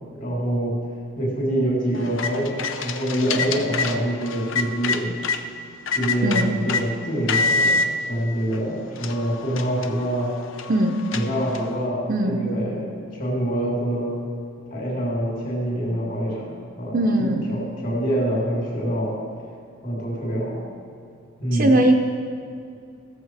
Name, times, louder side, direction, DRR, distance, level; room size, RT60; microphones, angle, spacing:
voice 1, 0.1-0.7 1.2-5.1 5.9-10.3 11.1-14.2 14.7-16.5 16.8-19.1 19.8-20.6 21.4-21.8, right 1 dB, 40° left, -4 dB, 3.2 m, -25 dB
sound 1, 1.9-5.4 5.9-6.8 7.3-7.9 8.5-8.6 9.0-11.8, left 4 dB, 70° left, 0.7 m, -26 dB
voice 2, 6.2-6.6 10.7-11.0 12.1-12.4 16.9-17.5 21.5-21.9, right 1 dB, 45° right, 2 dB, 0.7 m, -20 dB
15.5 x 7.2 x 4.8 m, 2.4 s
head